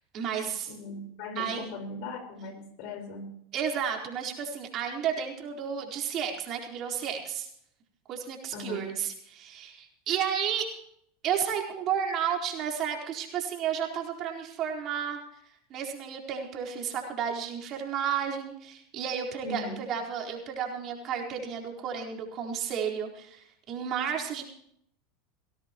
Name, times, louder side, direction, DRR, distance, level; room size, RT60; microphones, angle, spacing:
voice 1, 0.1-0.7 1.4-1.7 3.5-7.5 8.1-10.7 11.2-15.2 15.7-24.4, right 8 dB, 45° right, 1 dB, 4.2 m, -32 dB
voice 2, 0.7-3.4 8.5-8.9 19.4-19.8, left 2 dB, 60° left, 6 dB, 4.5 m, -39 dB
19.5 x 16.5 x 3.0 m, 0.70 s
hypercardioid pair, 95°, 0 cm